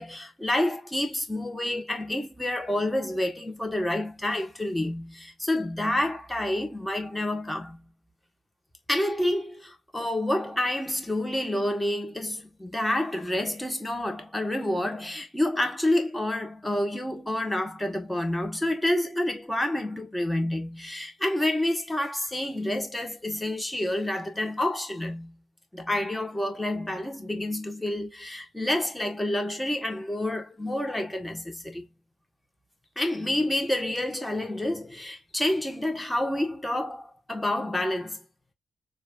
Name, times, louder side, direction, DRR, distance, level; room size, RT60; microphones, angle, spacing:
voice 1, 0.0-7.8 8.9-25.3 25.7-31.8 33.0-38.2, left 1 dB, 10° left, 2.0 m, -28 dB
5.0 x 3.4 x 2.7 m
hypercardioid pair, 40°, 0 cm